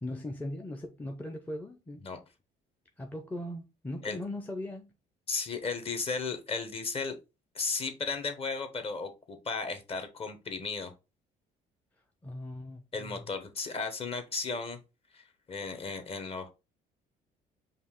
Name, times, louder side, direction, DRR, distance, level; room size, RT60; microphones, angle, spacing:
voice 1, 0.0-2.0 3.0-4.9 12.2-13.2, left 1 dB, 10° left, 0.5 m, -39 dB
voice 2, 5.3-7.2 7.5-10.9 12.9-14.8 15.1-16.5, left 4 dB, 35° left, 1.0 m, -35 dB
5.3 x 2.4 x 3.6 m
cardioid pair, 110°, 17 cm